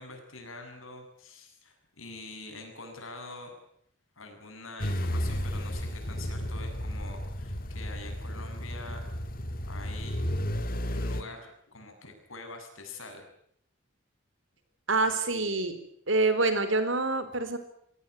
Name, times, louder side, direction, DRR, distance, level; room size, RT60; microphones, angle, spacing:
voice 1, 0.0-3.5 4.2-9.0 9.7-10.2 10.9-13.2, left 2 dB, 90° left, 5 dB, 7.5 m, -45 dB
sound 1, 4.8-11.2, equal, 45° left, 2.0 m, -33 dB
voice 2, 14.9-15.7 16.1-17.6, right 3 dB, 75° right, 10 dB, 4.2 m, -26 dB
24.5 x 18.0 x 9.9 m, 0.69 s
head